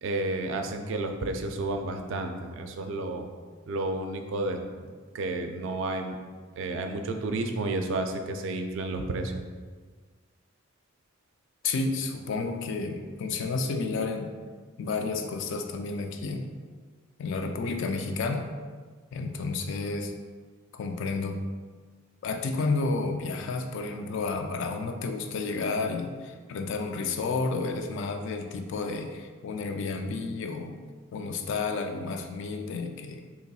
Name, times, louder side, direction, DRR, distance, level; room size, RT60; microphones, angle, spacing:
voice 1, 0.0-3.3 3.7-6.2 6.6-9.3, right 2 dB, 65° right, 5 dB, 0.3 m, -31 dB
voice 2, 11.6-14.3 14.8-16.5 17.2-18.5 19.1-20.1 20.7-21.4 22.2-30.8 31.1-33.2, left 3 dB, 60° left, 5 dB, 0.3 m, -31 dB
4.0 x 2.9 x 2.3 m, 1.5 s
head